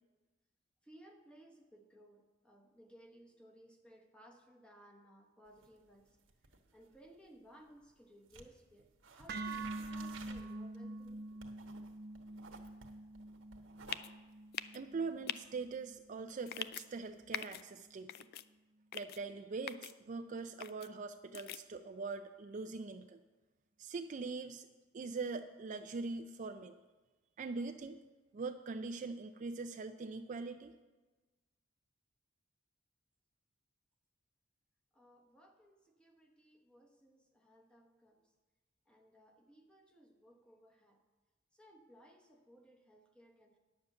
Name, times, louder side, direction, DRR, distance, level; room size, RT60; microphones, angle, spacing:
voice 1, 0.8-6.2 6.7-11.3 34.9-38.3 38.9-41.0 41.5-43.6, equal, 5° left, 1 dB, 1.1 m, -61 dB
sound 1, 5.5-8.0 8.3-17.2, right 4 dB, 80° right, 1.2 m, -57 dB
sound 2, 9.3-17.4, right 2 dB, 55° right, 0.9 m, -47 dB
sound 3, 13.9-14.1 14.5-14.8 15.3-15.4 16.5-16.8 17.3-17.6 18.1-18.4 18.9-19.2 19.7-19.9 20.6-20.9 21.3-21.6, left 11 dB, 50° left, 0.3 m, -42 dB
voice 2, 14.7-18.1 18.9-23.2 23.8-24.7 24.9-26.8 27.4-28.0 28.3-30.7, right 4 dB, 40° right, 7 dB, 0.4 m, -42 dB
10.0 x 7.0 x 6.7 m, 1.2 s
head